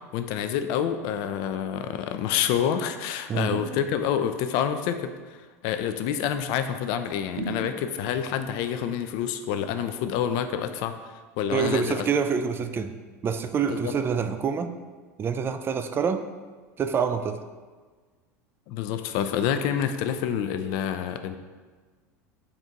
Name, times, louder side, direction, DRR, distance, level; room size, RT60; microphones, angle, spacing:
voice 1, 0.1-10.9 11.4-12.1 13.7-13.9 18.7-21.4, left 9 dB, 55° left, 9 dB, 0.4 m, -28 dB
sound 1, 3.5-4.3 7.4-8.3, right 2 dB, 75° right, 0.7 m, -37 dB
voice 2, 11.5-12.9 13.2-14.7 15.2-16.3 16.8-17.4, right 6 dB, 25° right, 9 dB, 0.3 m, -26 dB
4.1 x 3.4 x 3.8 m, 1.4 s
hypercardioid pair, 85°, 9 cm